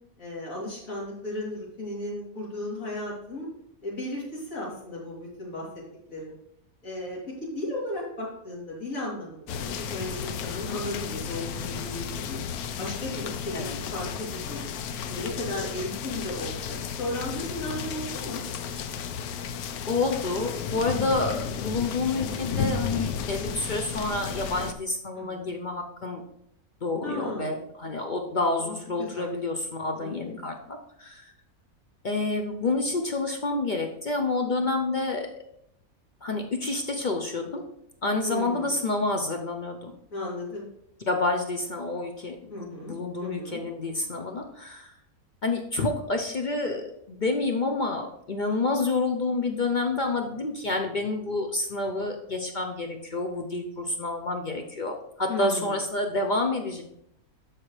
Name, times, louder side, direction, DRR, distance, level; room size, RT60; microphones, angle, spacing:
voice 1, 0.2-3.5 3.8-5.7 6.1-6.3 6.8-12.4 12.8-13.6 13.9-14.7 15.0-18.4 25.1-25.5 27.0-27.6 28.6-29.3 30.0-30.4 38.2-38.8 40.1-40.6 42.5-43.6 55.3-55.7, left 1 dB, 65° left, -5 dB, 3.4 m, -35 dB
sound 1, 9.5-24.7, left 7 dB, 85° left, 1.1 m, -33 dB
voice 2, 19.9-26.2 26.8-31.3 32.0-35.3 36.2-37.6 38.0-39.9 41.1-44.9 45.4-56.8, left 3 dB, 50° left, 3 dB, 0.6 m, -29 dB
13.5 x 4.7 x 3.2 m, 0.76 s
omnidirectional pair, 1.5 m